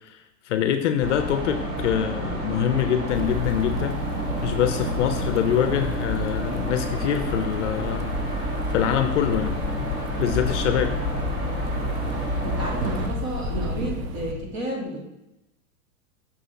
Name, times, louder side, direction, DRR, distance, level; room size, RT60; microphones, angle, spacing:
voice 1, 0.5-4.0 4.4-8.1 8.7-9.6 10.2-10.9, left 9 dB, 50° left, 8 dB, 0.5 m, -24 dB
sound 1, 1.0-13.1, right 1 dB, 40° right, 1.9 m, -29 dB
Wind, 3.1-14.4, left 6 dB, ahead, 0.9 m, -33 dB
Thunderstorm / Rain, 3.1-14.3, right 6 dB, 80° right, 0.6 m, -39 dB
voice 2, 12.4-15.0, right 1 dB, 55° right, -2 dB, 2.1 m, -32 dB
6.0 x 4.0 x 4.0 m, 0.89 s
supercardioid pair, 155°, 48 cm